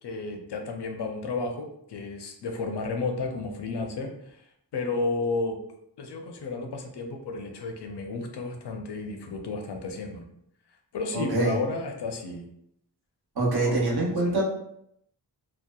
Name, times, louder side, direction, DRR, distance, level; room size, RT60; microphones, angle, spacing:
voice 1, 0.0-4.4 4.7-5.6 6.0-10.3 10.9-12.4 13.5-14.4, left 3 dB, 70° left, 4 dB, 0.5 m, -32 dB
voice 2, 11.1-11.5 13.4-14.4, right 2 dB, 60° right, -5 dB, 0.9 m, -25 dB
2.7 x 2.0 x 2.2 m, 0.74 s
wide cardioid pair, 65°, 43 cm